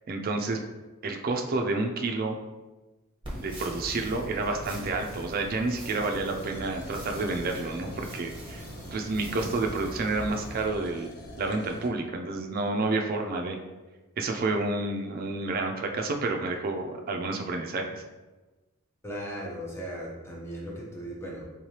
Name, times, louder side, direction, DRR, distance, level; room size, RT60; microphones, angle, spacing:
voice 1, 0.1-0.6 1.0-2.4 3.4-8.6 8.9-11.1 11.4-13.6 14.2-18.0, right 3 dB, 45° right, 3 dB, 0.4 m, -29 dB
sound 1, 3.2-10.7, right 1 dB, 25° right, 1.0 m, -41 dB
sound 2, 6.4-11.9, left 1 dB, 85° left, 0.5 m, -46 dB
voice 2, 19.0-21.4, equal, 10° left, -3 dB, 0.7 m, -37 dB
3.7 x 3.1 x 2.8 m, 1.2 s
head